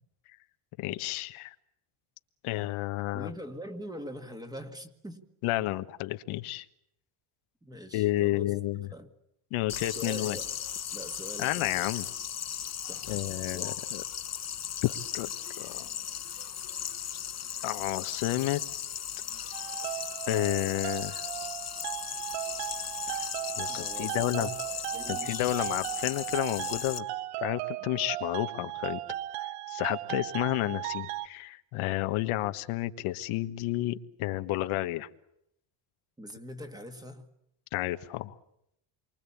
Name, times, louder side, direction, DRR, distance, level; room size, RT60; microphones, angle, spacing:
voice 1, 0.8-1.5 2.4-3.3 5.4-6.6 7.9-8.9 9.5-10.4 11.4-12.1 13.1-14.0 14.8-15.3 15.6-15.9 17.6-18.6 20.3-21.2 23.1-23.2 23.6-24.5 25.1-27.0 27.4-29.0 29.4-35.1 37.7-38.3, left 16 dB, 75° left, 9 dB, 1.5 m, -31 dB
voice 2, 3.1-5.3 7.6-8.5 8.9-9.1 10.0-10.5 10.9-11.7 12.8-13.8 23.7-24.6 24.9-25.7 36.2-37.3, equal, 10° right, 7 dB, 2.0 m, -43 dB
sound 1, 9.7-27.0, left 9 dB, 30° left, 1.5 m, -37 dB
sound 2, 14.6-20.2, right 6 dB, 60° right, 5.4 m, -59 dB
sound 3, 19.5-31.3, right 15 dB, 85° right, 1.0 m, -37 dB
28.5 x 24.5 x 8.6 m, 0.78 s
cardioid pair, 165°, 50 cm